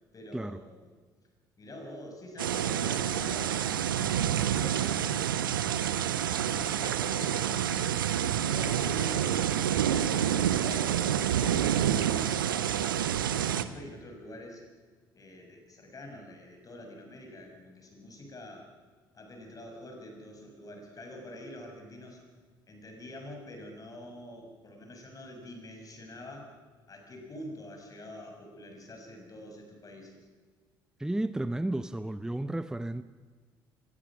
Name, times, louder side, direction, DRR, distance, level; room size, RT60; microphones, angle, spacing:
voice 1, 0.1-1.0 1.6-5.2 6.4-14.6 15.1-18.7 19.1-22.2 22.7-26.5 26.9-30.3, left 1 dB, 30° left, 2 dB, 6.4 m, -46 dB
sound 1, 2.4-13.6, right 10 dB, 75° right, 0.8 m, -28 dB
voice 2, 31.0-33.0, right 1 dB, 5° right, 14 dB, 0.7 m, -32 dB
24.0 x 20.0 x 6.2 m, 1.5 s
figure-of-eight pair, 50°, 11 cm